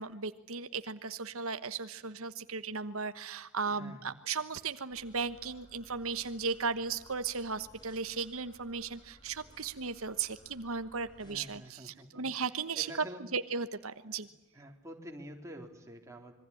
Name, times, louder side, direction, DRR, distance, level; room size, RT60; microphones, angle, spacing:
voice 1, 0.0-12.9 13.3-14.3, right 5 dB, 80° right, 11 dB, 1.2 m, -36 dB
voice 2, 3.6-4.2 11.2-12.2 12.7-13.2 14.1-14.3 14.5-16.3, equal, 15° right, 2 dB, 4.0 m, -48 dB
sound 1, 4.9-11.3, left 1 dB, 20° left, 5.0 m, -60 dB
26.5 x 23.0 x 8.6 m, 0.93 s
head